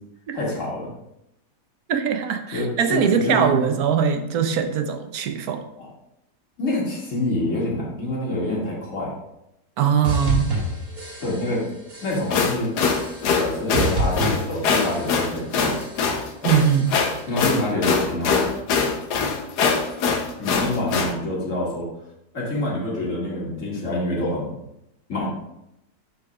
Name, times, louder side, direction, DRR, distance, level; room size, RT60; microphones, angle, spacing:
voice 1, 0.3-0.9 2.5-3.6 5.8-5.9 6.6-9.1 11.2-11.6 12.0-12.7 13.3-15.7 17.3-18.4 20.4-21.9 22.3-24.6 25.1-25.3, left 1 dB, 50° left, -5 dB, 2.4 m, -26 dB
voice 2, 1.9-5.6 9.8-10.5 16.4-16.9, right 8 dB, 70° right, 7 dB, 1.1 m, -21 dB
sound 1, 10.0-11.6 11.9-12.4 12.8-13.5 13.7-15.3 15.6-16.1 16.5-17.1, right 1 dB, 55° right, 2.3 m, -29 dB
sound 2, 12.1-21.1, left 5 dB, 80° left, 1.4 m, -22 dB
11.5 x 4.8 x 2.4 m, 0.83 s
omnidirectional pair, 1.8 m